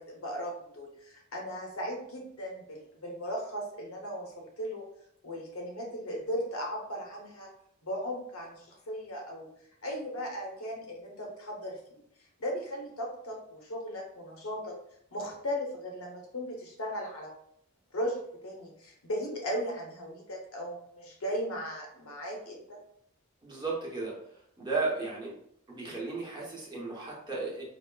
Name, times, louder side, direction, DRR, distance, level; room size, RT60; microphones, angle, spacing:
voice 1, 0.0-4.8 5.2-7.5 7.8-9.5 9.8-12.0 12.4-14.7 15.1-17.3 17.9-22.8, equal, 90° left, 0 dB, 0.9 m, -37 dB
voice 2, 23.4-24.1 24.6-25.3 25.7-27.6, right 3 dB, 20° right, -4 dB, 0.8 m, -34 dB
4.1 x 2.0 x 2.3 m, 0.71 s
head